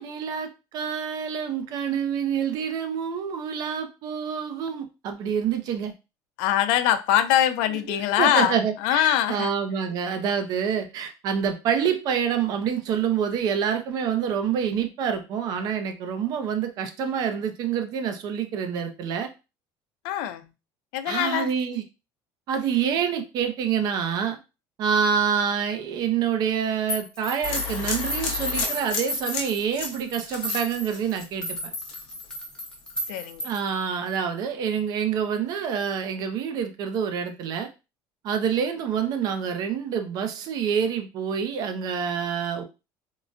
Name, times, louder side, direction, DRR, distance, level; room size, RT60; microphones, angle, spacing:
voice 1, 0.0-5.9 7.7-19.3 21.1-21.8 22.5-24.4 24.8-31.6 33.4-37.7 38.2-42.6, right 7 dB, 45° right, 0.5 m, -27 dB
voice 2, 6.4-9.5 20.0-20.5 20.9-21.5 33.1-33.5, left 12 dB, 90° left, 0.4 m, -23 dB
sound 1, 26.9-33.7, left 1 dB, 10° left, 0.8 m, -33 dB
sound 2, 27.4-31.5 31.8-32.3, left 5 dB, 60° left, 0.7 m, -33 dB
3.7 x 2.1 x 2.5 m
cardioid pair, 170°, 9 cm